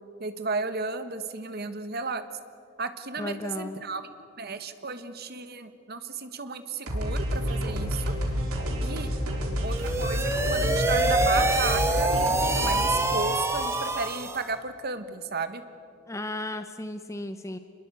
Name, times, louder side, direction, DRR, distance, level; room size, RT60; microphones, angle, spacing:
voice 1, 0.2-2.2 2.8-4.0 4.4-8.1 8.8-9.1 9.6-15.6, right 4 dB, 45° right, 10 dB, 1.4 m, -34 dB
voice 2, 3.2-3.8 16.1-17.6, left 1 dB, 15° left, 9 dB, 0.7 m, -34 dB
sound 1, 6.9-12.9, equal, 85° right, 4.2 m, -29 dB
sound 2, 9.7-14.5, right 2 dB, 10° right, 1.8 m, -26 dB
25.0 x 21.5 x 8.4 m, 2.5 s
head